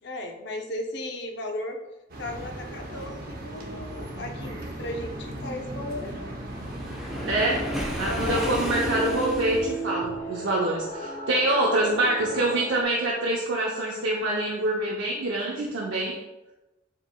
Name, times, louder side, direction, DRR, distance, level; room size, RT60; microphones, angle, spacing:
voice 1, 0.0-1.8 2.2-6.2 8.0-8.5, left 1 dB, 65° left, 4 dB, 0.6 m, -35 dB
sound 1, 2.1-8.4, right 1 dB, 50° right, 0.8 m, -37 dB
Waves surf, 6.6-9.9, equal, ahead, 0.8 m, -33 dB
sound 2, 7.1-12.8, right 1 dB, 20° left, 1.5 m, -35 dB
voice 2, 7.3-7.6 8.0-16.1, right 1 dB, 85° right, -4 dB, 0.7 m, -25 dB
7.4 x 2.9 x 2.2 m, 1.0 s
head